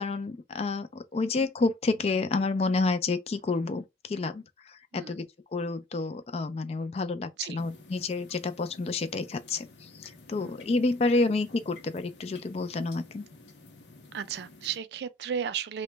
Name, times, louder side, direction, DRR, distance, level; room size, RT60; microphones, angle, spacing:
voice 1, 0.0-5.2 5.5-13.2, left 3 dB, 35° left, 0.3 m, -29 dB
sound 1, 7.6-14.8, left 3 dB, 80° left, 0.7 m, -52 dB
voice 2, 14.1-15.8, right 8 dB, 65° right, 0.3 m, -34 dB
3.0 x 2.1 x 3.2 m
head